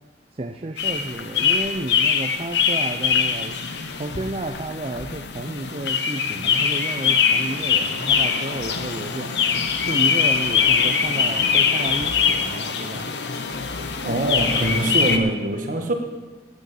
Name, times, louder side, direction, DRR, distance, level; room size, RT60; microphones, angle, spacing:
voice 1, 0.3-3.6 4.0-9.3 9.8-13.1, right 2 dB, 35° right, 5 dB, 0.5 m, -31 dB
sound 1, 0.8-15.2, left 6 dB, 75° left, 0.9 m, -22 dB
voice 2, 14.0-15.9, right 1 dB, 50° right, 3 dB, 1.5 m, -23 dB
9.4 x 8.9 x 7.9 m, 1.3 s
head